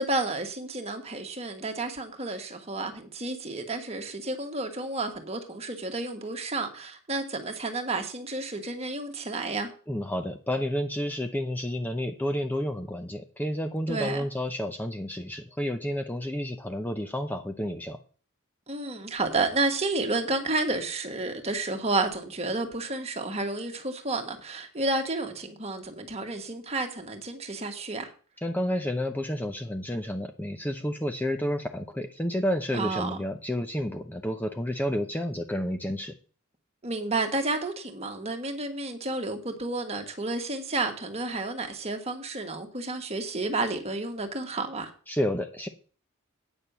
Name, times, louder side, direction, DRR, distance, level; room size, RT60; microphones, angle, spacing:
voice 1, 0.0-9.7 13.9-14.2 18.7-28.1 32.7-33.2 36.8-44.9, right 2 dB, 30° right, 1.5 m, -31 dB
voice 2, 9.9-18.0 28.4-36.1 45.1-45.7, equal, 10° left, 0.6 m, -30 dB
9.0 x 6.6 x 6.8 m
head